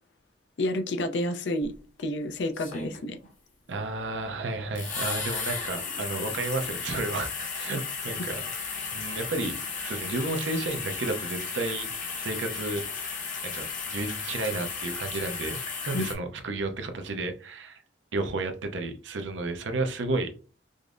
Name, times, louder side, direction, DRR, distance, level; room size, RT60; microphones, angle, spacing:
voice 1, 0.6-1.7 2.0-3.2 15.9-16.1, left 1 dB, 70° left, 0.5 m, -29 dB
sound 1, 1.6-1.7 2.5-3.3 4.7-16.1, left 5 dB, 45° left, 0.8 m, -34 dB
voice 2, 3.7-7.3 7.6-8.4 8.9-11.9 12.2-12.9 13.4-15.6 15.9-17.8 18.1-20.3, right 2 dB, 85° right, 0.6 m, -32 dB
5.1 x 2.0 x 2.5 m
head